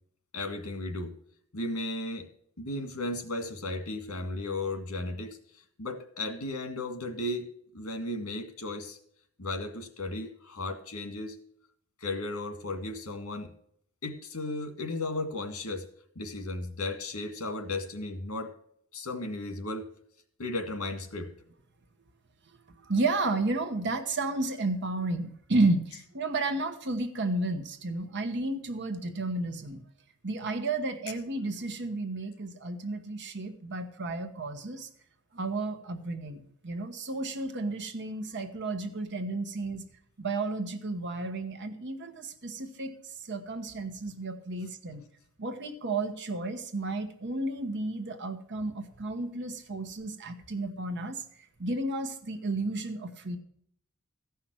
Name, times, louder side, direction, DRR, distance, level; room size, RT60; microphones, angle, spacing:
voice 1, 0.3-1.1 1.5-2.3 2.6-5.4 5.8-9.0 9.4-11.4 12.0-13.5 14.0-15.9 16.2-18.5 18.9-19.9 20.4-21.3, left 2 dB, 85° left, 6 dB, 1.9 m, -35 dB
voice 2, 22.9-25.8 26.1-29.8 30.2-34.9 35.3-39.8 40.2-42.9 43.3-45.0 45.4-51.2 51.6-53.4, right 2 dB, 55° right, 7 dB, 1.1 m, -32 dB
14.5 x 5.7 x 6.2 m, 0.67 s
head